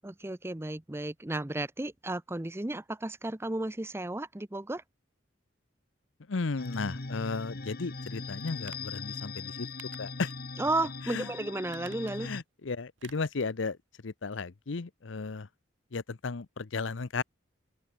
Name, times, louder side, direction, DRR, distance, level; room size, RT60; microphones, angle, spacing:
voice 1, 0.0-4.8 10.6-12.3, right 2 dB, 15° right, 0.6 m, -33 dB
voice 2, 6.3-9.7 10.0-10.3 11.1-11.3 12.2-13.8 14.0-15.5 15.9-17.2, left 4 dB, 80° left, 0.7 m, -34 dB
sound 1, 6.6-12.4, left 3 dB, 50° left, 1.6 m, -40 dB
sound 2, 8.6-9.0 9.8-10.4 10.8-10.9 11.6-12.4 13.0-13.4 13.7-13.8, right 8 dB, 75° right, 1.8 m, -52 dB
open air
head